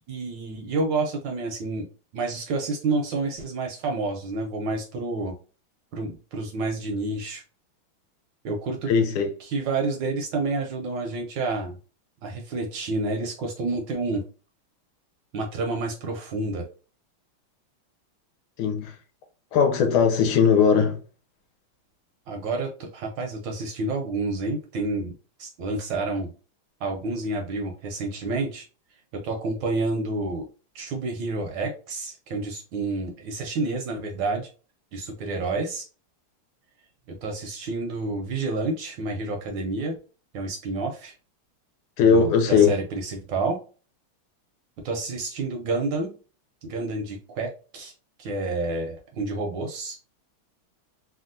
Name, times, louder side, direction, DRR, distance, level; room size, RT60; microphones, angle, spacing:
voice 1, 0.1-1.9 2.1-5.3 5.9-7.4 8.4-8.9 9.4-11.8 12.2-14.2 15.3-16.7 22.3-25.1 25.4-26.3 26.8-28.6 29.1-30.5 30.7-34.5 34.9-35.9 37.1-40.0 40.3-41.1 42.0-43.6 44.8-46.1 46.6-47.9 48.2-50.0, right 3 dB, 75° right, 1.1 m, -29 dB
voice 2, 8.9-9.3 18.6-18.9 19.5-21.0 42.0-42.7, left 6 dB, 80° left, 1.5 m, -19 dB
3.4 x 2.3 x 2.5 m
omnidirectional pair, 2.4 m